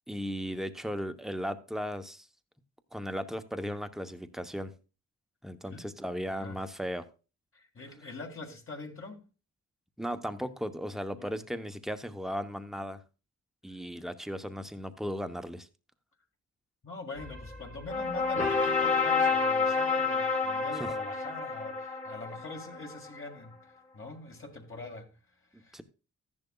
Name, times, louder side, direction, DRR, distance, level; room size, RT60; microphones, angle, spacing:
voice 1, 0.1-2.3 2.9-4.7 5.4-7.1 10.0-13.0 13.6-15.7 20.8-20.9 25.7-25.8, equal, ahead, 0.9 m, -36 dB
voice 2, 6.3-6.6 7.5-9.2 11.1-11.4 13.7-13.8 16.8-25.8, left 3 dB, 45° left, 2.0 m, -44 dB
sound 1, 17.2-23.1, left 4 dB, 25° left, 1.7 m, -29 dB
14.0 x 10.5 x 2.3 m
wide cardioid pair, 100°, 30 cm